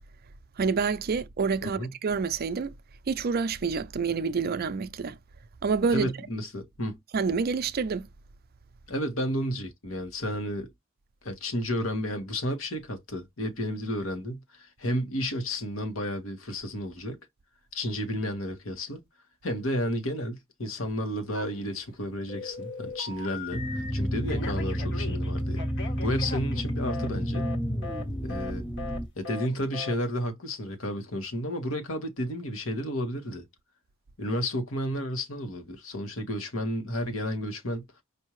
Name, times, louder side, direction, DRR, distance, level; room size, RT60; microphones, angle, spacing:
voice 1, 0.6-2.7 3.1-5.2 5.6-6.1 7.1-8.1, right 5 dB, 50° right, 0.5 m, -27 dB
voice 2, 5.9-7.0 8.9-10.7 11.2-17.2 17.7-19.0 19.4-25.6 26.0-27.5 28.2-28.6 29.1-33.4 34.2-37.9, equal, 80° left, 1.5 m, -32 dB
Telephone, 21.3-21.9 22.3-23.9 24.3-27.1 27.3-27.6 27.8-28.0 28.3-28.5 28.8-29.0 29.2-29.5 29.7-29.9, left 3 dB, 60° left, 1.5 m, -39 dB
sound 1, 23.5-29.1, equal, 5° left, 0.6 m, -30 dB
5.3 x 2.7 x 3.1 m
head